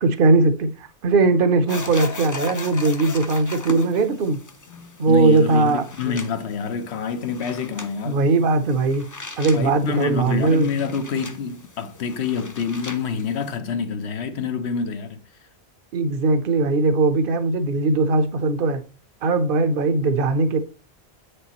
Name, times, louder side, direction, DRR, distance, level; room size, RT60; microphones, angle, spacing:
voice 1, 0.0-0.7 1.0-4.4 5.0-6.2 8.0-9.0 9.4-10.7 15.9-18.8 19.2-20.6, right 3 dB, 60° right, 0.9 m, -19 dB
sound 1, 1.7-13.6, left 3 dB, 25° left, 0.4 m, -38 dB
voice 2, 4.7-8.2 9.5-15.2, left 6 dB, 80° left, 1.1 m, -27 dB
8.1 x 6.5 x 3.0 m
omnidirectional pair, 1.1 m